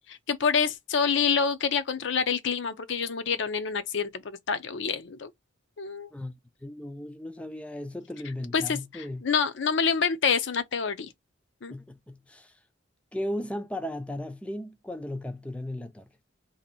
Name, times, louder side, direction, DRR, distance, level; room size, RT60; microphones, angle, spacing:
voice 1, 0.1-5.3 5.8-6.1 8.5-11.1 11.6-11.7, left 6 dB, 60° left, 0.5 m, -27 dB
voice 2, 6.6-9.2 11.7-12.6 13.1-16.1, left 1 dB, 5° left, 0.3 m, -36 dB
2.8 x 2.6 x 3.9 m
head